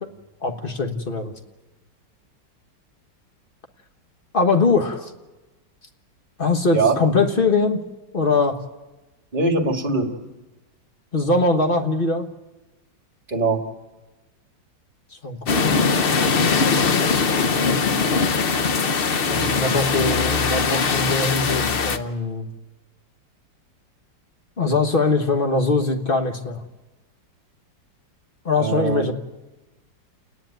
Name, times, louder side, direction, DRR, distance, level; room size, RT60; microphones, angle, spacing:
voice 1, 0.4-1.3 4.3-5.1 6.4-7.8 8.1-8.6 11.1-12.3 15.2-15.7 19.5-22.5 24.6-26.6 28.4-29.1, left 3 dB, 35° left, 5 dB, 1.3 m, -21 dB
voice 2, 9.3-10.1 13.3-13.6 19.3-20.2 28.6-29.1, right 3 dB, 25° right, 4 dB, 2.1 m, -23 dB
sound 1, 15.5-22.0, left 5 dB, 50° left, 0.7 m, -21 dB
30.0 x 10.0 x 9.1 m, 1.2 s
omnidirectional pair, 2.0 m